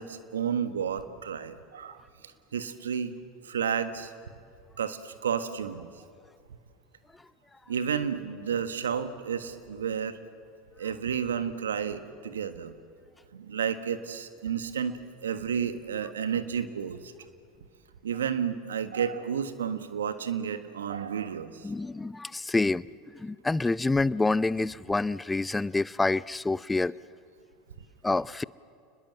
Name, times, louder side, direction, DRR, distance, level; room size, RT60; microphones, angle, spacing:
voice 1, 0.0-2.0 2.5-3.2 3.4-4.1 4.8-5.9 7.7-10.2 10.8-12.7 13.3-17.1 18.0-21.7, right 7 dB, 80° right, 11 dB, 1.4 m, -31 dB
voice 2, 21.6-22.8 23.1-26.9 28.0-28.4, left 3 dB, 10° left, 20 dB, 0.5 m, -27 dB
29.5 x 20.5 x 7.8 m, 2.3 s
figure-of-eight pair, 75°, 0 cm